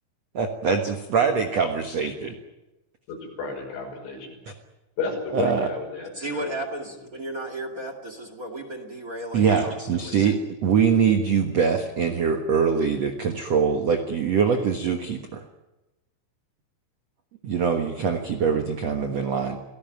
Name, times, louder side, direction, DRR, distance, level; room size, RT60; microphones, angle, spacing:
voice 1, 0.3-2.3 5.3-5.7 9.3-10.4 10.6-15.4 17.4-19.6, right 6 dB, 70° right, 6 dB, 1.5 m, -23 dB
voice 2, 3.1-4.3 5.0-6.5, left 4 dB, 75° left, 0 dB, 8.3 m, -32 dB
voice 3, 6.1-10.4, right 1 dB, 35° right, 7 dB, 1.4 m, -34 dB
29.0 x 18.0 x 9.2 m, 1.0 s
omnidirectional pair, 5.4 m